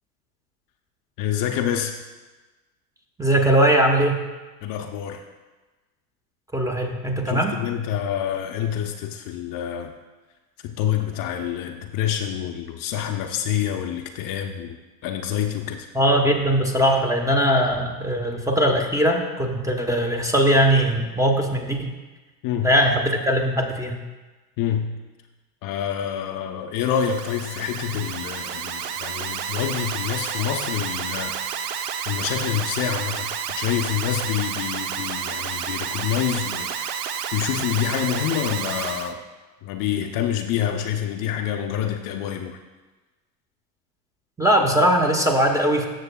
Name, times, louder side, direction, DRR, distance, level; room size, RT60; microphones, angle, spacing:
voice 1, 1.2-1.9 4.6-5.2 7.2-9.9 10.6-14.8 15.0-15.9 22.4-22.7 24.6-24.9 25.6-31.3 32.1-36.8 37.3-39.2 39.6-42.6, left 9 dB, 45° left, 4 dB, 0.7 m, -27 dB
voice 2, 3.2-4.2 6.5-7.5 15.9-21.9 22.6-24.0 44.4-45.9, equal, 5° right, 2 dB, 0.9 m, -20 dB
Alarm, 26.8-39.1, right 8 dB, 70° right, 0.8 m, -30 dB
14.0 x 6.6 x 2.2 m, 1.2 s
hypercardioid pair, 95°, 49 cm